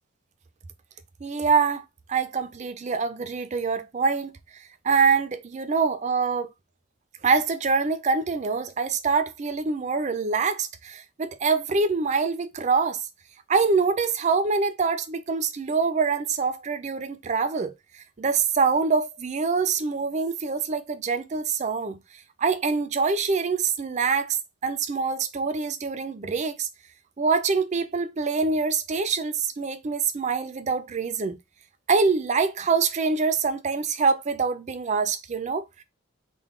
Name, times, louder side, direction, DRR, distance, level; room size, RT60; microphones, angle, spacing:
voice 1, 1.2-4.3 4.8-6.5 7.2-13.0 13.5-17.7 18.2-22.0 22.4-26.7 27.2-31.4 31.9-35.8, right 5 dB, 35° right, 0.4 m, -25 dB
3.7 x 2.1 x 3.6 m
head